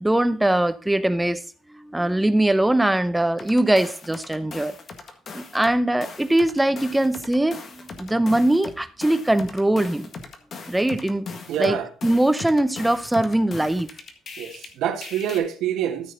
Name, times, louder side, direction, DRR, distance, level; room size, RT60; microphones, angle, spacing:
voice 1, 0.0-1.4 1.7-4.8 5.3-10.1 10.7-11.3 11.6-13.9, right 1 dB, 5° right, 0.7 m, -21 dB
sound 1, 3.4-5.7 6.0-14.7 15.0-15.4, left 4 dB, 40° left, 1.7 m, -39 dB
voice 2, 11.5-11.9 14.4-16.1, right 9 dB, 75° right, 1.7 m, -26 dB
13.5 x 6.3 x 4.0 m
cardioid pair, 150°, 0 cm